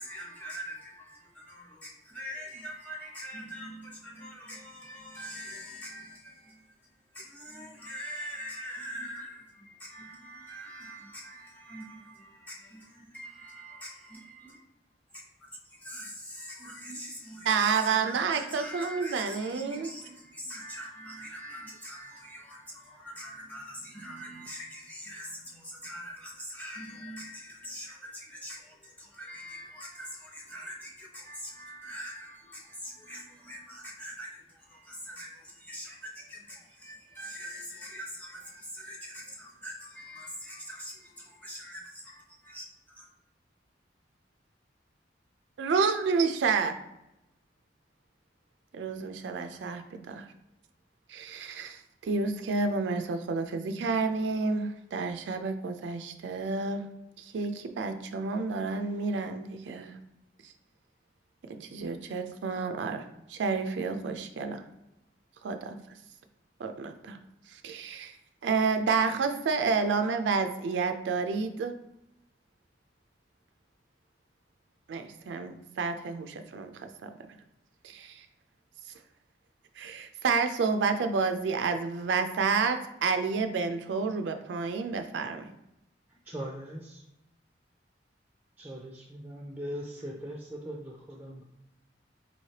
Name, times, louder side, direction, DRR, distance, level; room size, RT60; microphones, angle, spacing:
voice 1, 0.0-14.6 15.1-43.1, equal, 10° left, -2 dB, 0.8 m, -44 dB
voice 2, 17.5-19.9 45.6-46.8 48.7-50.3 51.1-56.9 57.2-60.0 60.4-60.5 61.5-64.6 65.4-65.8 66.6-67.2 67.5-68.1 68.4-71.7 74.9-77.1 77.8-78.3 79.8-85.5, right 4 dB, 80° right, 7 dB, 0.4 m, -30 dB
voice 3, 86.2-87.1 88.6-91.4, equal, 10° right, -1 dB, 0.4 m, -40 dB
4.1 x 3.2 x 2.8 m, 0.88 s
head